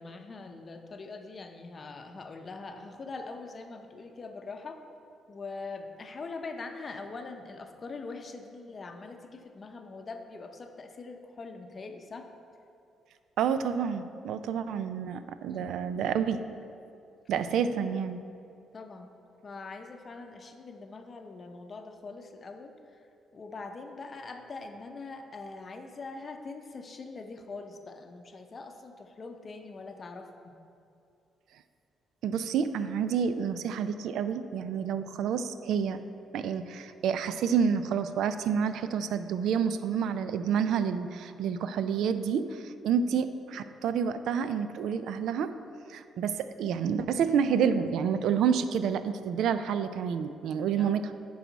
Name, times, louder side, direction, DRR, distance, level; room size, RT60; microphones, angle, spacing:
voice 1, 0.0-4.8 5.3-12.3 15.5-15.7 18.7-19.1 19.4-22.7 23.3-30.5 43.1-43.2 50.7-51.0, left 3 dB, 40° left, 5 dB, 0.6 m, -43 dB
voice 2, 13.4-16.4 17.3-18.2 32.2-36.0 36.3-45.5 45.9-51.1, right 7 dB, 80° right, 11 dB, 0.3 m, -29 dB
10.0 x 4.8 x 4.0 m, 2.5 s
cardioid pair, 90°, 0 cm